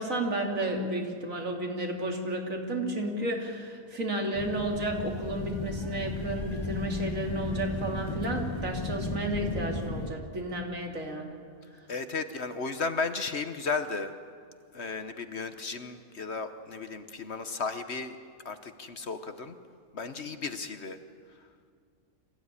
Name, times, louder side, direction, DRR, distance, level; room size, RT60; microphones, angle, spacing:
voice 1, 0.0-11.4, right 1 dB, 65° right, 1 dB, 3.1 m, -32 dB
sound 1, 4.3-10.1, left 1 dB, 20° left, 1.4 m, -35 dB
voice 2, 11.9-14.1 14.7-18.2 18.4-19.6 19.9-21.0, left 4 dB, 50° left, 9 dB, 1.2 m, -34 dB
26.0 x 15.5 x 9.8 m, 2.2 s
omnidirectional pair, 1.5 m